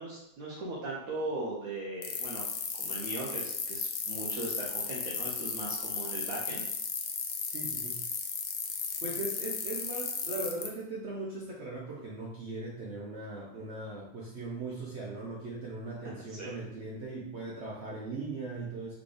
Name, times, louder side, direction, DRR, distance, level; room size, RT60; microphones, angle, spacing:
voice 1, 0.0-2.4 2.8-6.6 16.0-16.5, right 2 dB, 70° right, -5 dB, 1.3 m, -39 dB
sound 1, 2.0-10.7, left 6 dB, 70° left, 1.0 m, -35 dB
voice 2, 7.5-8.0 9.0-18.9, right 2 dB, 55° right, -4 dB, 0.9 m, -39 dB
3.9 x 3.6 x 3.3 m, 0.78 s
omnidirectional pair, 1.5 m